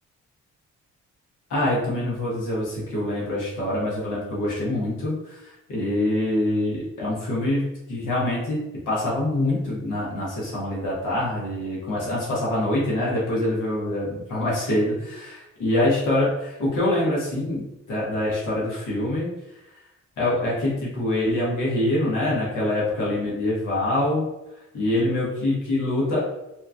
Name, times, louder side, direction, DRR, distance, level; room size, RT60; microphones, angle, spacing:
voice 1, 1.5-17.6 17.9-19.3 20.2-24.3 24.7-26.2, left 1 dB, 80° left, -5 dB, 1.1 m, -25 dB
2.8 x 2.2 x 2.4 m, 0.92 s
cardioid pair, 60°, 31 cm